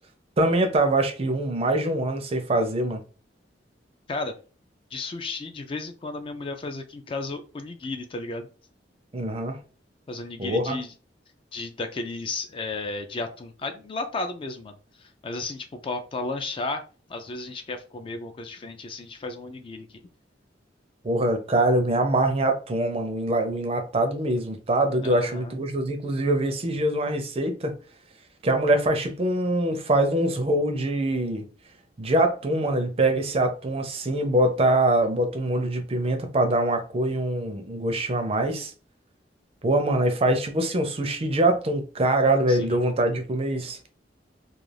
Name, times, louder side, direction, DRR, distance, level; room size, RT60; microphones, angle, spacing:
voice 1, 0.4-3.0 9.1-9.6 10.4-10.8 21.0-27.7 28.4-31.4 32.0-38.7 39.6-43.8, right 1 dB, 30° right, 0.5 m, -24 dB
voice 2, 4.9-8.5 10.1-10.9 11.5-16.8 17.1-19.9 25.0-25.6 42.5-42.8, left 3 dB, 30° left, 0.3 m, -33 dB
2.4 x 2.3 x 3.2 m
head